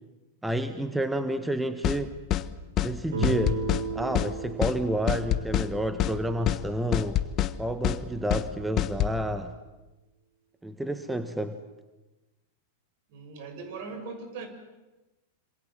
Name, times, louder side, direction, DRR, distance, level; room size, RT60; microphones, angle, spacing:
voice 1, 0.4-2.1 2.8-3.6 3.9-7.2 7.6-9.5 10.6-11.6, right 1 dB, 5° right, 10 dB, 1.6 m, -29 dB
sound 1, 1.8-2.0 2.3-2.5 2.8-2.9 3.2-3.8 4.1-4.3 4.6-4.8 5.1-5.7 6.0-6.2 6.5-6.6 6.9-7.5 7.8-8.0 8.3-8.5 8.8-9.1, left 13 dB, 35° left, 1.3 m, -26 dB
Guitar, 3.1-7.9, right 3 dB, 70° right, 6.7 m, -36 dB
voice 2, 13.1-14.5, right 4 dB, 55° right, 7 dB, 6.3 m, -39 dB
27.5 x 26.5 x 7.6 m, 1.1 s
hypercardioid pair, 100°, 0 cm